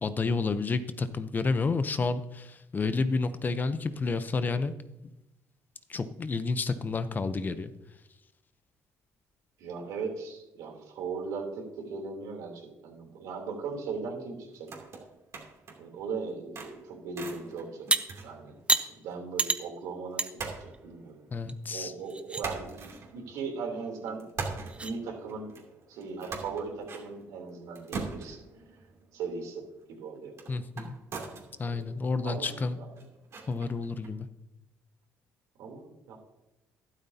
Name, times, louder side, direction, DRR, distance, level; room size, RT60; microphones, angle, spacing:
voice 1, 0.0-4.7 5.9-7.7 21.3-21.9 30.5-31.0 31.6-32.8 33.5-34.3, left 4 dB, 30° left, 12 dB, 0.7 m, -30 dB
voice 2, 9.6-14.7 15.8-17.9 18.2-21.2 21.7-24.3 24.8-25.5 25.9-28.4 29.1-29.6 29.9-30.3 31.7-31.8 32.2-32.5 32.8-32.9 35.6-36.2, right 4 dB, 85° right, 1 dB, 3.3 m, -38 dB
sound 1, 14.5-15.9 16.3-19.1 19.4-19.5 20.4-21.7 22.1-23.7 24.1-34.1, right 4 dB, 55° right, 2.9 m, -43 dB
sound 2, 17.9-18.0 18.7-18.9 19.4-19.6 20.2-20.3 20.7-20.8 21.5-21.6 22.0-22.4 24.1-24.2 24.7-24.9, right 3 dB, 20° right, 0.8 m, -27 dB
12.5 x 12.0 x 2.8 m, 0.94 s
cardioid pair, 100°, 6 cm